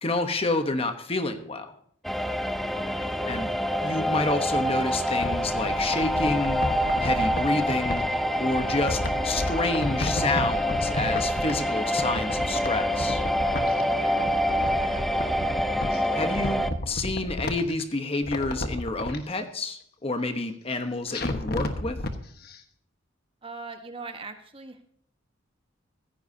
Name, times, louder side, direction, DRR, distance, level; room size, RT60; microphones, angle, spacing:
voice 1, 0.0-1.7 3.3-3.5 3.8-6.6 7.0-8.0 8.4-13.2 16.1-22.0, left 2 dB, 30° left, 7 dB, 1.0 m, -29 dB
sound 1, 2.0-16.7, equal, ahead, 0.7 m, -26 dB
voice 2, 2.7-3.3 13.9-15.2 23.4-24.8, right 3 dB, 25° right, 7 dB, 1.3 m, -42 dB
sound 2, 4.9-8.0 8.5-11.7 12.0-13.8 14.1-16.0 16.3-17.8 18.2-19.2 21.1-22.1 22.5-22.6, left 1 dB, 50° left, 1.3 m, -32 dB
15.5 x 15.0 x 2.8 m, 0.63 s
head